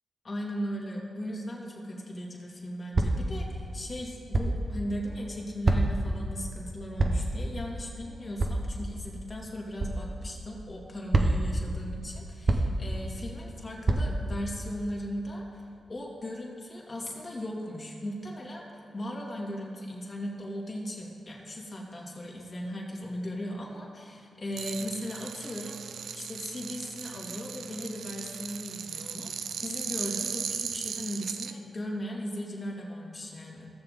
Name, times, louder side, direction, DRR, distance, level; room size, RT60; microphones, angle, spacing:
voice 1, 0.2-15.6 15.9-33.7, equal, 45° left, -2 dB, 2.7 m, -37 dB
sound 1, 2.9-3.3 4.3-4.7 5.6-6.1 7.0-7.4 8.4-8.7 9.8-10.0 11.1-11.6 12.5-12.9 13.9-14.3, right 2 dB, 45° right, 1.0 m, -25 dB
sound 2, 24.5-31.5, right 7 dB, 80° right, 0.5 m, -37 dB
16.5 x 7.0 x 3.8 m, 2.4 s
cardioid pair, 50°, 0 cm